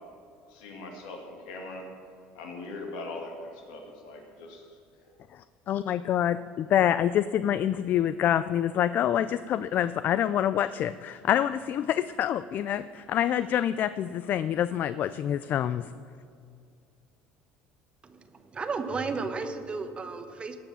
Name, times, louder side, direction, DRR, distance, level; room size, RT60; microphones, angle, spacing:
voice 1, 0.5-1.9 2.3-4.7 5.0-5.2, left 2 dB, 85° left, 1 dB, 2.4 m, -41 dB
voice 2, 5.7-15.8, left 10 dB, 50° left, 14 dB, 0.4 m, -26 dB
voice 3, 18.0-20.6, right 4 dB, 25° right, 8 dB, 1.1 m, -34 dB
17.5 x 6.0 x 7.1 m, 2.3 s
supercardioid pair, 105°, 4 cm